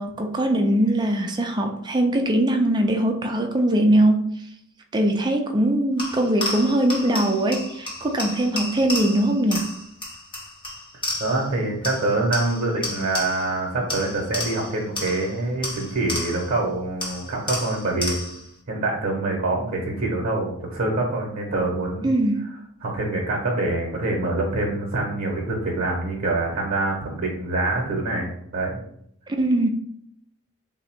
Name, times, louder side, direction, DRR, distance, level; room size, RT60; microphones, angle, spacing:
voice 1, 0.0-4.3 4.9-9.7 22.0-22.4 29.4-29.7, right 1 dB, 20° right, 0.4 m, -21 dB
sound 1, 6.0-11.5 11.8-13.6 13.9-16.6 17.0-18.5, left 1 dB, 25° left, 0.8 m, -32 dB
voice 2, 11.2-18.2 18.7-22.1 22.8-28.8, right 2 dB, 45° right, 0.9 m, -25 dB
3.7 x 2.0 x 4.4 m
head